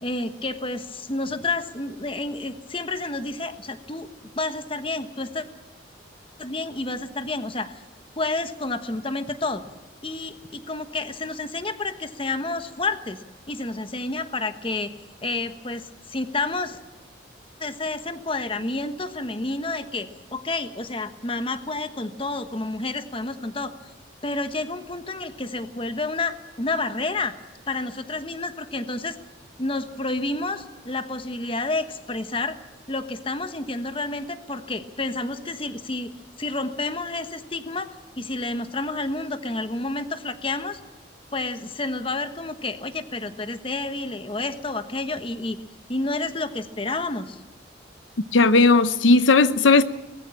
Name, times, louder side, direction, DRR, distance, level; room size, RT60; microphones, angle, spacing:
voice 1, 0.0-4.1 4.4-5.4 6.4-7.8 8.2-9.6 10.0-13.2 13.5-14.9 15.2-16.8 17.6-23.7 24.2-27.3 27.7-29.2 29.6-32.6 32.9-36.1 36.4-37.9 38.2-40.8 41.3-45.6 45.9-47.4, left 2 dB, 30° left, 1.2 m, -29 dB
voice 2, 48.3-49.8, left 3 dB, 85° left, 0.8 m, -16 dB
20.5 x 14.5 x 8.8 m
head